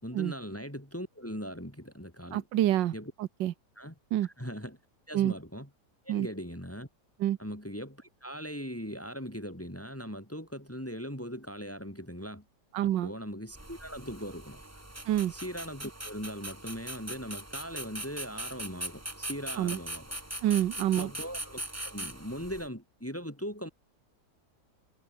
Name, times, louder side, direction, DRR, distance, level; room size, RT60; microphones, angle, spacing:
voice 1, 0.0-2.4 2.9-3.1 3.8-3.9 4.2-4.8 5.1-5.7 6.0-6.9 7.4-12.4 12.8-14.6 15.3-20.0 21.0-23.7, equal, 5° left, 5.0 m, -40 dB
voice 2, 2.3-2.9 3.2-3.5 4.1-4.3 5.1-5.3 6.1-6.3 7.2-7.4 12.7-13.1 15.1-15.3 19.6-19.8 20.4-21.1, right 12 dB, 85° right, 1.6 m, -27 dB
sound 1, 13.5-22.7, right 1 dB, 10° right, 1.5 m, -41 dB
omnidirectional pair, 1.9 m